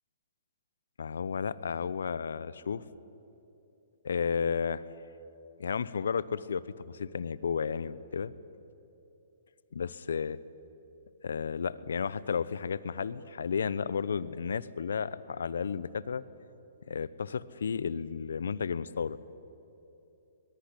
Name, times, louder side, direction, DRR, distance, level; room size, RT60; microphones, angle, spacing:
voice 1, 1.0-2.8 4.0-4.8 5.6-8.3 9.7-10.4 11.2-16.2 16.9-19.2, left 6 dB, 75° left, 18 dB, 0.9 m, -33 dB
22.0 x 21.5 x 10.0 m, 3.0 s
hypercardioid pair, 125°, 0 cm